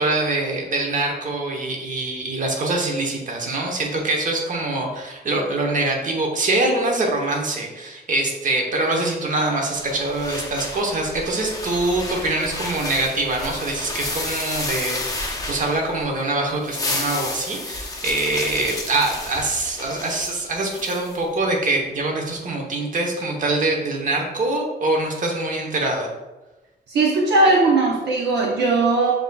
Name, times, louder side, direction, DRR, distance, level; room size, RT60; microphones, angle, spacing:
voice 1, 0.0-26.1, right 2 dB, 45° right, 1 dB, 0.9 m, -24 dB
sound 1, 9.7-16.1 16.5-21.2, left 2 dB, 20° left, 0.7 m, -31 dB
voice 2, 26.9-29.1, right 2 dB, 70° right, -2 dB, 0.7 m, -18 dB
7.2 x 2.7 x 2.3 m, 1.1 s
cardioid pair, 115°, 18 cm